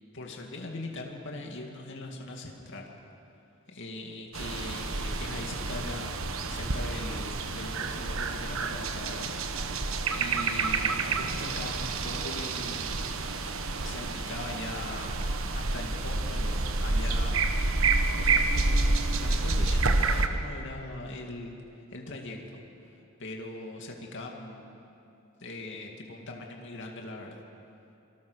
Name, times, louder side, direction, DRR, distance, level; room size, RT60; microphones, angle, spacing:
voice 1, 0.1-2.9 3.7-9.3 9.6-9.8 10.1-13.1 13.8-15.3 15.5-17.5 18.1-18.8 19.1-22.6 22.9-24.9 25.4-27.4, left 2 dB, 60° left, 1 dB, 2.5 m, -41 dB
sound 1, 4.3-20.3, right 3 dB, 65° right, 1.3 m, -29 dB
26.5 x 24.5 x 6.6 m, 2.8 s
head